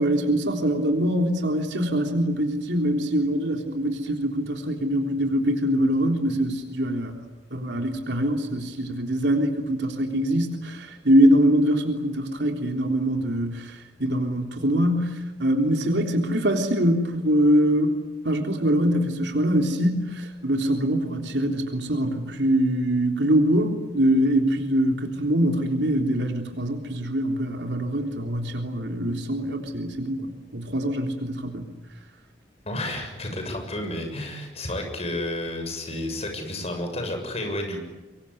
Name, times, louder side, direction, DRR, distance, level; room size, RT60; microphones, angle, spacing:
voice 1, 0.0-7.1 7.5-17.9 18.2-31.7, equal, 85° right, 3 dB, 3.6 m, -23 dB
voice 2, 32.7-37.8, left 1 dB, 35° left, 4 dB, 6.9 m, -31 dB
25.0 x 23.0 x 9.9 m, 1.1 s
head